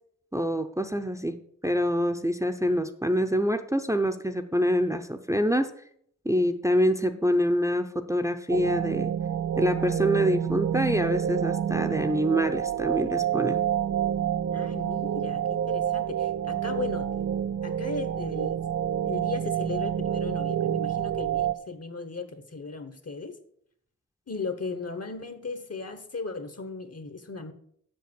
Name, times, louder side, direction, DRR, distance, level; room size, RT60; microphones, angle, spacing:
voice 1, 0.3-1.4 1.6-5.7 6.2-9.1 9.6-13.6, equal, 10° right, 6 dB, 0.7 m, -26 dB
sound 1, 8.5-21.5, right 9 dB, 65° right, 0.5 m, -28 dB
voice 2, 14.5-17.1 17.6-18.6 19.0-23.4 24.3-27.5, left 4 dB, 50° left, 10 dB, 1.2 m, -36 dB
7.7 x 6.3 x 6.9 m, 0.67 s
wide cardioid pair, 60°, 32 cm